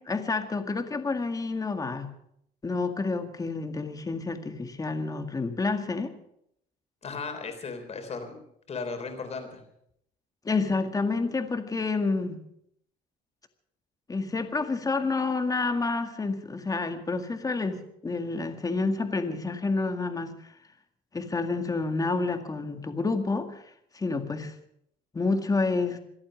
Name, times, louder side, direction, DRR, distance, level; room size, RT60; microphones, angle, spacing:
voice 1, 0.0-2.1 2.6-6.1 10.4-12.4 14.1-20.4 21.1-23.6 23.9-24.5 25.1-26.0, left 3 dB, 20° left, 7 dB, 1.9 m, -29 dB
voice 2, 7.0-8.4 8.7-9.6, left 4 dB, 40° left, 6 dB, 3.7 m, -36 dB
26.0 x 8.7 x 6.4 m, 0.72 s
cardioid pair, 110°, 17 cm